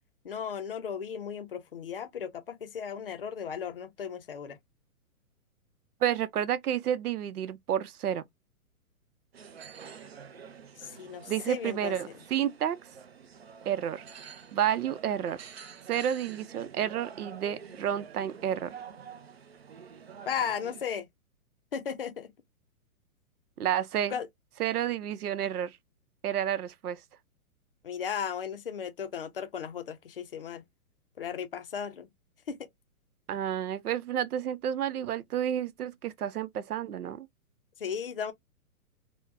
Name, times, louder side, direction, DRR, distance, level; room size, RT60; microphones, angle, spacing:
voice 1, 0.2-4.6 10.8-12.2 20.3-21.1 21.7-22.3 24.1-24.3 27.8-30.6 31.2-32.1 32.5-32.7 37.8-38.3, left 7 dB, 40° left, 0.5 m, -36 dB
voice 2, 6.0-8.2 11.3-12.8 13.7-14.0 14.5-15.4 15.9-18.8 23.6-24.1 24.6-25.7 26.2-27.0 33.3-37.3, right 10 dB, 90° right, 0.7 m, -30 dB
sound 1, 9.3-20.8, right 7 dB, 45° right, 0.5 m, -48 dB
4.5 x 2.2 x 2.5 m
hypercardioid pair, 180°, 44 cm